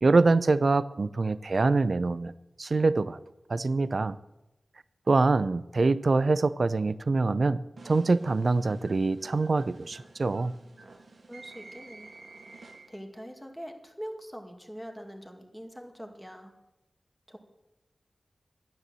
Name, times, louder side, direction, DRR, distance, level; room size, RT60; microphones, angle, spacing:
voice 1, 0.0-2.3 2.6-3.2 3.5-4.2 5.1-10.5, right 3 dB, 65° right, 15 dB, 0.5 m, -24 dB
sound 1, 7.8-13.2, right 3 dB, 80° right, 1.8 m, -51 dB
voice 2, 11.3-12.1 12.5-16.5 17.3-17.4, equal, ahead, 3 dB, 2.2 m, -43 dB
12.0 x 9.7 x 7.6 m, 0.96 s
wide cardioid pair, 60°, 0 cm